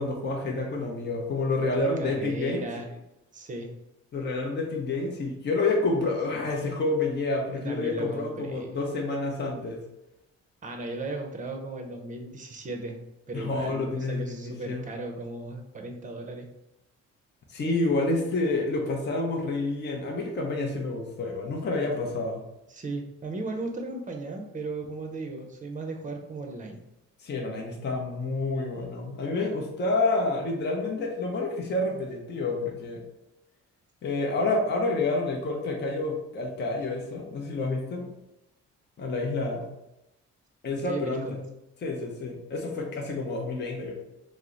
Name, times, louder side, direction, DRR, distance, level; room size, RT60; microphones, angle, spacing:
voice 1, 0.0-2.6 4.1-9.8 13.3-14.8 17.5-22.4 27.2-33.0 34.0-38.0 39.0-39.6 40.6-41.4 41.8-43.9, left 2 dB, 35° left, 0 dB, 0.7 m, -29 dB
voice 2, 1.7-3.0 3.3-3.7 7.6-8.7 10.6-13.0 13.3-16.5 22.7-26.8 40.7-41.4, right 2 dB, 25° right, 3 dB, 0.6 m, -36 dB
2.9 x 2.0 x 3.7 m, 0.90 s
cardioid pair, 90°, 30 cm